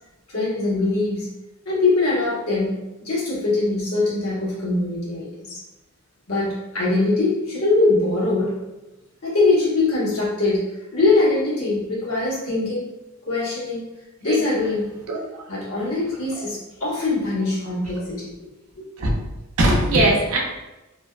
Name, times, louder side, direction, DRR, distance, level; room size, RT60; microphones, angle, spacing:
voice 1, 0.3-1.3 1.6-5.6 6.3-8.5 9.2-10.6 10.9-12.8 13.3-13.8 14.2-14.8 15.5-18.5 18.7-18.9, left 3 dB, 90° left, -7 dB, 1.1 m, -22 dB
voice 2, 19.6-20.4, right 1 dB, 80° right, -1 dB, 0.5 m, -19 dB
2.5 x 2.2 x 2.3 m, 1.0 s
head